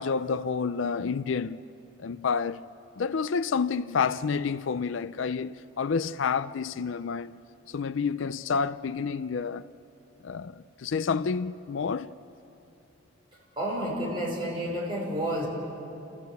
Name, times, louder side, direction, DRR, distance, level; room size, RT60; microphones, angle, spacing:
voice 1, 0.0-1.6 2.0-2.6 3.0-7.4 7.7-9.6 10.2-12.1, left 5 dB, 65° left, 0.4 m, -29 dB
voice 2, 13.6-15.5, equal, 25° right, 5.5 m, -30 dB
29.5 x 15.0 x 8.2 m
head